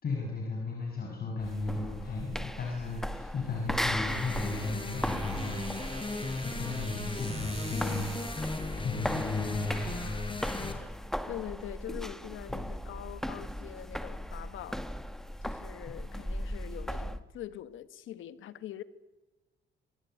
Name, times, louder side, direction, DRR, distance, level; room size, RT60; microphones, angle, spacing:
voice 1, 0.0-8.2 8.8-10.8 12.5-12.6, left 3 dB, 50° left, 7.2 m, -35 dB
sound 1, 1.4-17.2, equal, ahead, 1.7 m, -37 dB
sound 2, 3.9-10.7, left 3 dB, 25° left, 4.9 m, -37 dB
sound 3, 4.4-10.4, right 3 dB, 30° right, 6.5 m, -48 dB
voice 2, 11.3-14.8 15.4-18.8, left 12 dB, 80° left, 1.5 m, -43 dB
27.0 x 22.5 x 9.5 m
cardioid pair, 90°, 20 cm